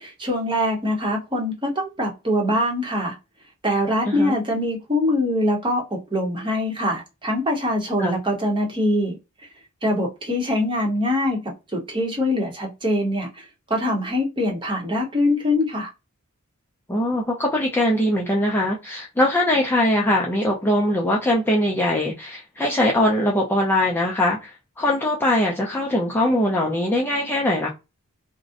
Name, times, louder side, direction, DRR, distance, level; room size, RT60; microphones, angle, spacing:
voice 1, 0.2-3.2 3.6-9.1 9.8-11.4 11.7-15.9, left 1 dB, 20° right, 0.8 m, -23 dB
voice 2, 16.9-27.7, left 1 dB, 10° left, 0.4 m, -21 dB
2.5 x 2.0 x 2.4 m
head